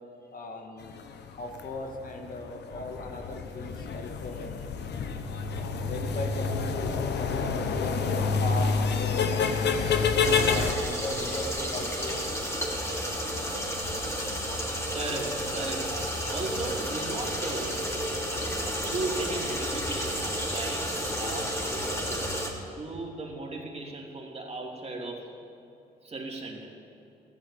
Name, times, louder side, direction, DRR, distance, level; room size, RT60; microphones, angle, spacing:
voice 1, 0.3-1.0 1.3-4.6 5.5-9.6 10.4-12.2, left 2 dB, 50° left, 2 dB, 2.2 m, -38 dB
sound 1, 0.8-10.7, left 5 dB, 70° left, 1.2 m, -28 dB
sound 2, 10.2-22.5, equal, 15° left, 3.3 m, -31 dB
voice 2, 14.9-17.8 18.7-22.3 22.8-25.3 26.0-26.7, right 2 dB, 35° right, 0 dB, 3.1 m, -36 dB
14.0 x 12.0 x 7.2 m, 2.7 s
supercardioid pair, 65°, 18 cm